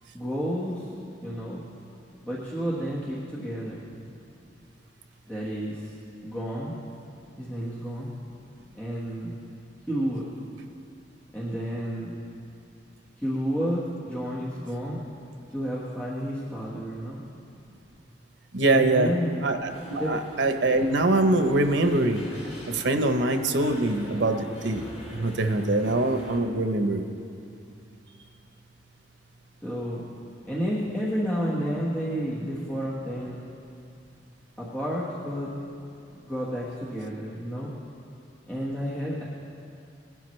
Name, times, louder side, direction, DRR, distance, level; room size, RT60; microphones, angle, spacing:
voice 1, 0.1-0.9 1.2-1.6 2.2-3.8 5.3-5.9 6.2-6.7 7.4-8.1 8.7-9.4 9.9-10.2 11.3-12.1 13.2-15.0 15.5-17.2 18.7-19.3 19.9-20.1 29.6-30.0 30.4-33.4 34.6-35.5 36.2-37.7 38.5-39.2, equal, 10° left, -8 dB, 1.4 m, -30 dB
voice 2, 18.5-19.1 19.4-22.2 22.7-24.9 25.1-27.1, right 2 dB, 90° right, 7 dB, 0.8 m, -23 dB
sound 1, 19.7-26.4, equal, 40° left, 2.4 m, -43 dB
20.0 x 12.0 x 3.2 m, 2.5 s
head